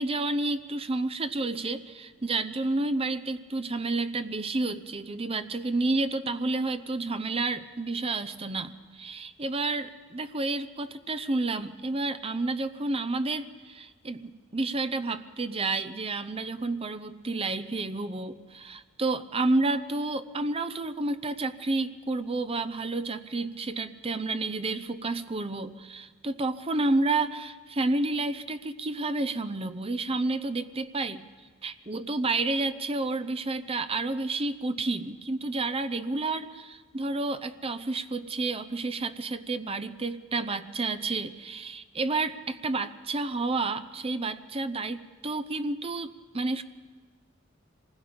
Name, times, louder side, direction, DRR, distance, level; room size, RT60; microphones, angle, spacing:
voice 1, 0.0-31.3 31.6-46.6, right 2 dB, 30° right, 11 dB, 0.7 m, -30 dB
26.0 x 20.0 x 5.2 m, 1.4 s
head